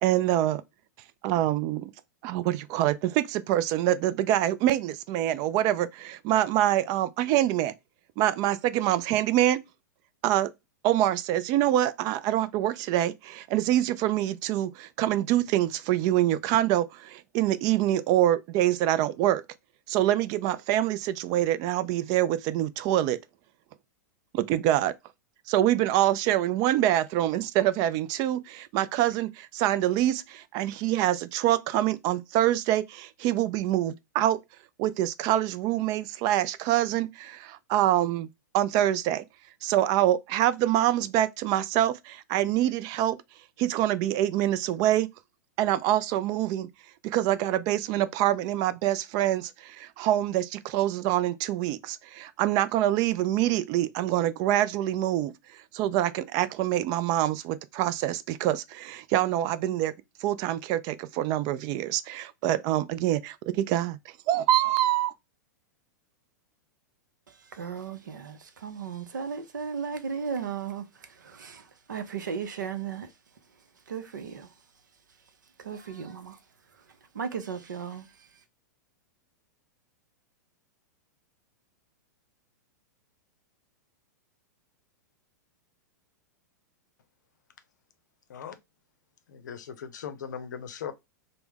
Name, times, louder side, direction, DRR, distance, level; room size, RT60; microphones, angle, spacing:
voice 1, 0.0-0.6 1.2-1.9 2.2-7.7 8.2-9.6 10.2-10.5 10.8-19.4 19.9-23.2 24.3-24.9 25.5-34.4 34.8-38.3 38.5-39.2 39.6-43.2 43.6-45.1 45.6-46.7 47.0-55.3 55.7-59.9 60.2-64.0 64.3-65.1, right 13 dB, 40° right, 0.3 m, -25 dB
voice 2, 67.5-70.9 71.2-71.6 71.9-73.1 73.9-74.5 75.6-76.4 77.1-78.1, right 6 dB, 80° right, 0.6 m, -35 dB
voice 3, 89.3-90.9, left 7 dB, 75° left, 0.6 m, -38 dB
3.3 x 2.1 x 3.5 m
hypercardioid pair, 105°, 10 cm